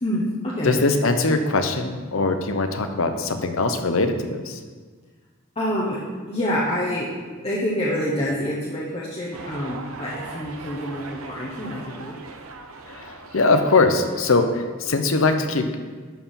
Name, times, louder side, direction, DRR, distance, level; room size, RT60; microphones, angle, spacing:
voice 1, 0.0-0.8 5.6-6.0 6.3-7.1 7.4-12.2, equal, 30° left, -6 dB, 1.1 m, -27 dB
voice 2, 0.6-4.6 12.9-15.8, left 3 dB, 65° left, 7 dB, 0.8 m, -21 dB
sound 1, 9.3-14.5, right 3 dB, 70° right, 0.7 m, -40 dB
11.0 x 4.7 x 5.6 m, 1.5 s
head